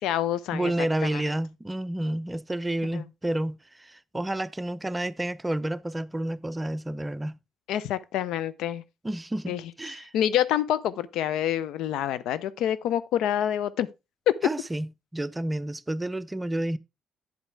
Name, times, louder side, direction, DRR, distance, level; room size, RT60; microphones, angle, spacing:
voice 1, 0.0-0.7 1.1-1.2 2.9-3.0 7.7-8.8 9.5-9.6 10.1-13.9 14.3-14.4, left 11 dB, 70° left, 0.5 m, -27 dB
voice 2, 0.5-7.4 9.0-10.1 14.4-16.8, right 1 dB, 15° right, 0.6 m, -30 dB
8.1 x 8.0 x 3.3 m
hypercardioid pair, 50°, 0 cm